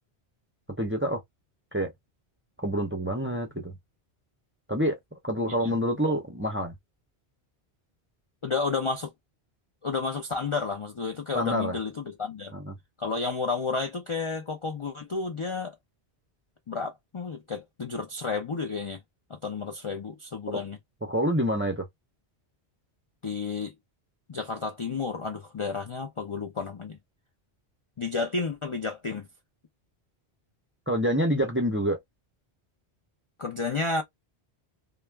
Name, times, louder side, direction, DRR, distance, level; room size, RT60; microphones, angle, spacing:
voice 1, 0.8-1.2 1.7-1.9 2.6-3.8 4.7-5.0 5.2-6.7 11.3-11.8 12.5-12.7 21.0-21.9 30.9-32.0, equal, 15° right, 0.5 m, -27 dB
voice 2, 8.4-9.1 9.8-12.5 13.0-15.7 16.7-19.0 19.3-20.8 23.2-23.7 24.3-27.0 28.0-29.3 33.4-34.0, left 4 dB, 45° left, 0.4 m, -31 dB
2.4 x 2.2 x 3.1 m
omnidirectional pair, 1.1 m